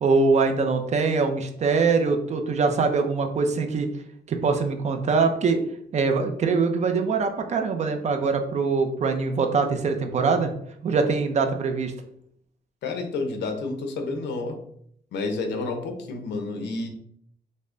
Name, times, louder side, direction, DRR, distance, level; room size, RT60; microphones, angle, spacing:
voice 1, 0.0-3.9 4.3-5.6 5.9-10.5 10.8-11.9, right 4 dB, 40° right, 6 dB, 0.5 m, -23 dB
voice 2, 12.8-14.6 15.1-16.9, left 3 dB, 80° left, 5 dB, 0.8 m, -30 dB
5.4 x 2.1 x 3.7 m, 0.68 s
cardioid pair, 165°, 18 cm